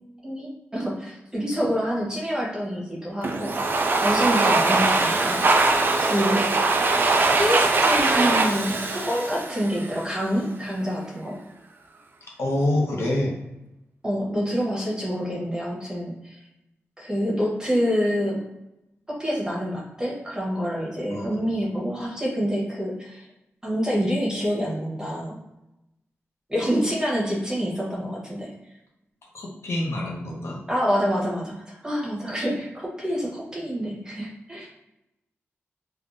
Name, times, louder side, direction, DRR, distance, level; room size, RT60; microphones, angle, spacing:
voice 1, 0.2-5.5 6.0-6.5 7.4-11.4 14.0-16.4 17.0-18.4 19.1-23.3 23.6-25.4 26.5-28.5 30.7-34.7, equal, 15° right, -4 dB, 1.0 m, -27 dB
Domestic sounds home sounds, 3.2-10.1, right 3 dB, 45° right, 0.4 m, -21 dB
voice 2, 12.4-13.3 21.1-21.4 29.3-30.6, left 1 dB, 65° left, -2 dB, 0.8 m, -26 dB
3.5 x 2.3 x 2.5 m, 0.90 s
wide cardioid pair, 90°, 5 cm